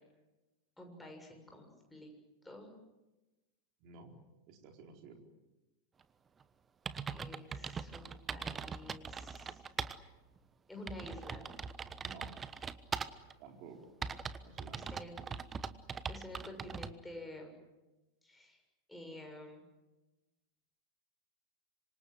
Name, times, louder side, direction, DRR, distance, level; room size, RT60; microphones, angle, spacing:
voice 1, 0.8-2.1 2.4-2.7 7.1-9.6 10.7-11.5 14.7-15.1 16.1-17.6 18.2-18.6 18.9-19.6, left 1 dB, 5° left, 2 dB, 6.9 m, -50 dB
voice 2, 3.8-4.2 4.5-5.2 12.0-12.3 13.4-13.8 14.4-15.1, right 4 dB, 40° right, 3 dB, 4.5 m, -53 dB
sound 1, 6.4-6.5 6.9-10.0 10.4-10.5 10.9-13.3 14.0-16.9, right 6 dB, 20° right, 1.1 m, -41 dB
26.5 x 25.0 x 7.9 m, 1.1 s
figure-of-eight pair, 90°, 0 cm